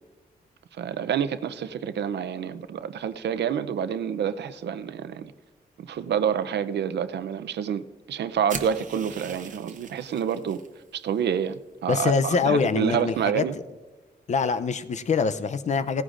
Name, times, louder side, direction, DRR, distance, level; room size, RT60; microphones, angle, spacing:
voice 1, 0.8-5.3 5.8-10.6 10.9-13.5, right 8 dB, 90° right, 12 dB, 0.6 m, -28 dB
sound 1, 8.5-10.7, right 5 dB, 50° right, 0.8 m, -39 dB
voice 2, 11.9-13.4 14.3-16.0, left 5 dB, 45° left, 13 dB, 0.5 m, -24 dB
17.0 x 14.5 x 2.5 m, 1.2 s
wide cardioid pair, 165°, 17 cm